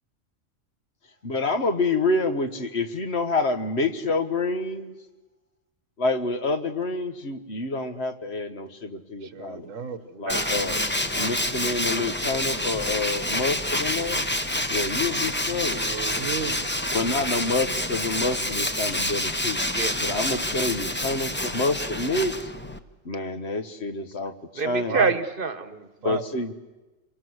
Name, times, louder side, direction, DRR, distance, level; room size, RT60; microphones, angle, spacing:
voice 1, 1.2-4.9 6.0-9.7 10.2-10.9 11.1-14.2 14.7-15.8 16.9-19.6 20.0-22.5 23.0-25.0 26.0-26.5, left 3 dB, 55° left, 8 dB, 1.6 m, -27 dB
voice 2, 9.2-10.0 15.8-16.6 24.9-25.2 26.0-26.2, right 6 dB, 85° right, 12 dB, 1.7 m, -32 dB
voice 3, 10.1-10.6 19.7-20.0 24.5-25.9, right 4 dB, 45° right, 13 dB, 1.3 m, -27 dB
Tools, 10.3-22.8, left 1 dB, 10° left, 0.9 m, -28 dB
27.5 x 23.0 x 8.0 m, 1.1 s
omnidirectional pair, 1.3 m